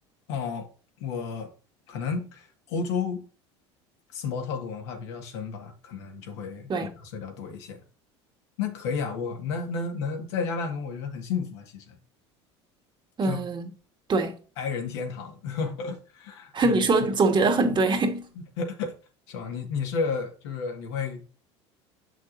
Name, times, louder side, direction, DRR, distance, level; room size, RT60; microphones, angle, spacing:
voice 1, 0.3-0.7 1.0-1.5 1.9-3.3 4.1-6.7 7.0-7.8 8.6-12.0 13.2-13.4 14.6-16.8 18.6-18.9 19.3-21.3, left 5 dB, 75° left, 1.7 m, -32 dB
voice 2, 13.2-13.7 14.1-14.4 16.5-18.3, right 3 dB, 30° right, 1.5 m, -23 dB
7.3 x 6.0 x 2.6 m
hypercardioid pair, 75°, 15 cm